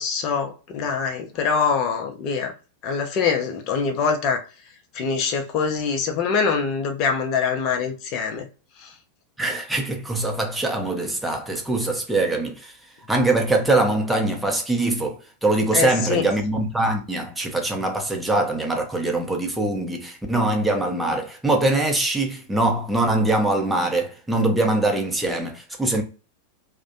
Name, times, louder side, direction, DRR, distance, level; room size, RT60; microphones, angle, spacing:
voice 1, 0.0-2.5 2.8-4.4 4.9-8.5 8.8-8.9 15.7-16.3, left 5 dB, 40° left, 0.6 m, -24 dB
voice 2, 9.4-12.7 13.1-26.0, right 2 dB, 5° right, 0.6 m, -23 dB
2.5 x 2.1 x 2.6 m
figure-of-eight pair, 90°, 0 cm